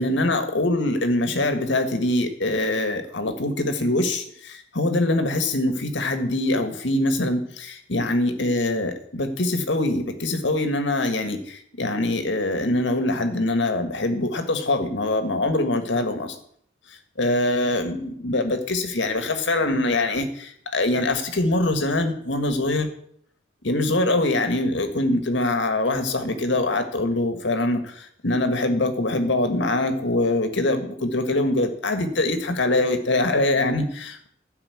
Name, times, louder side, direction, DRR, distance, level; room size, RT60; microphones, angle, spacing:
voice 1, 0.0-16.4 17.2-22.9 23.6-34.3, left 2 dB, 75° left, 7 dB, 1.7 m, -23 dB
12.0 x 5.7 x 8.4 m, 0.65 s
head